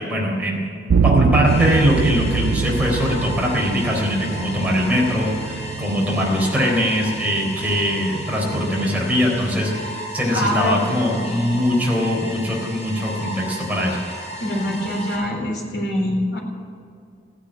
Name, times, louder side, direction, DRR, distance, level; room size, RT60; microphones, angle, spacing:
voice 1, 0.0-9.7 10.1-14.0, equal, 10° right, -3 dB, 3.9 m, -21 dB
sound 1, 0.9-9.9, right 6 dB, 85° right, 0.3 m, -25 dB
sound 2, 1.4-15.1, equal, 40° left, 4.1 m, -35 dB
voice 2, 10.3-11.6 14.4-16.4, left 1 dB, 70° left, 0 dB, 3.7 m, -24 dB
15.0 x 10.0 x 8.9 m, 2.4 s
head